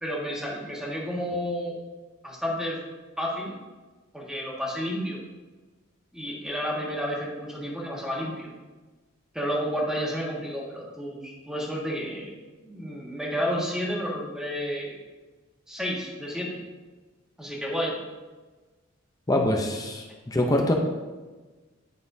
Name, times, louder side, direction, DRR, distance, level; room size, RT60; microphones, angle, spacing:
voice 1, 0.0-1.7 2.2-2.8 3.2-3.6 4.1-5.2 6.1-8.5 9.3-12.3 12.6-14.9 15.7-16.6 17.4-17.9, equal, 5° right, -4 dB, 1.4 m, -31 dB
voice 2, 19.3-20.7, left 1 dB, 20° left, 2 dB, 0.6 m, -24 dB
10.5 x 5.6 x 2.7 m, 1.3 s
head